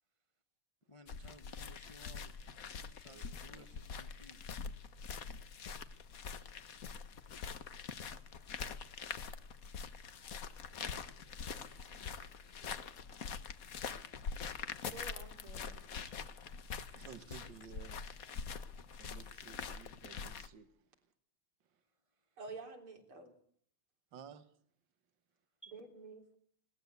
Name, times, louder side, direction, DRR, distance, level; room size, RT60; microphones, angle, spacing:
voice 1, 0.9-2.6 2.9-4.4 11.3-11.8 16.9-17.1 25.6-25.8, equal, 25° left, 0.6 m, -59 dB
sound 1, 1.1-20.5, left 6 dB, 50° left, 1.4 m, -44 dB
voice 2, 3.1-3.7 11.3-11.9 12.2-14.9 16.9-18.1 18.9-21.0 21.6-21.8 24.1-24.5, right 8 dB, 60° right, 2.1 m, -57 dB
voice 3, 14.9-15.8 22.4-23.4 25.7-26.3, right 3 dB, 80° right, 4.4 m, -50 dB
20.5 x 18.0 x 8.2 m
omnidirectional pair, 2.3 m